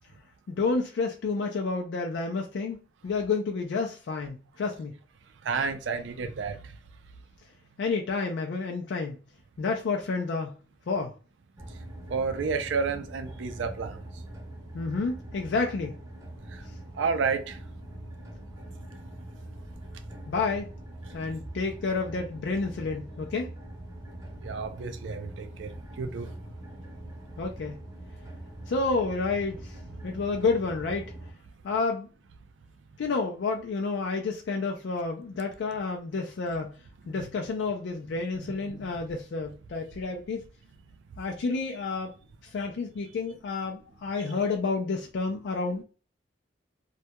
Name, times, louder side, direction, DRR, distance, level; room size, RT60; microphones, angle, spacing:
voice 1, 0.5-2.8 3.0-5.0 7.8-9.2 9.6-10.5 10.9-11.1 14.7-16.0 20.3-20.7 21.1-23.5 27.4-27.7 28.7-29.7 30.0-31.0 31.6-32.1 33.0-36.7 37.1-40.4 41.2-42.1 42.5-45.8, left 4 dB, 70° left, 0.4 m, -30 dB
voice 2, 5.4-6.7 12.1-14.0 16.5-16.6 16.9-17.6 24.4-26.3 37.1-37.3, right 5 dB, 90° right, 0.4 m, -31 dB
sound 1, 11.6-31.3, right 1 dB, 20° right, 0.6 m, -43 dB
2.2 x 2.2 x 2.7 m
head